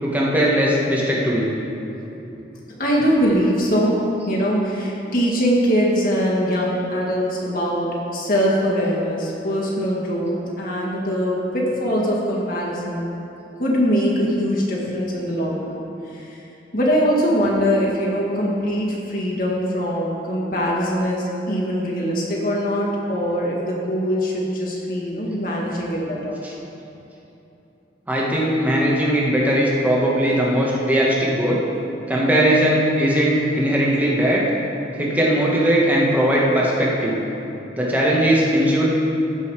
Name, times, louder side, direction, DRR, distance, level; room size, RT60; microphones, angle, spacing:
voice 1, 0.0-1.5 26.4-26.5 28.1-31.6 32.1-34.4 35.0-37.2 37.8-38.8, equal, 10° right, -5 dB, 1.5 m, -19 dB
voice 2, 2.8-4.0 4.3-13.1 13.6-15.8 16.1-16.4 16.7-26.4, equal, 50° left, -4 dB, 1.9 m, -22 dB
16.0 x 5.5 x 4.8 m, 3.0 s
head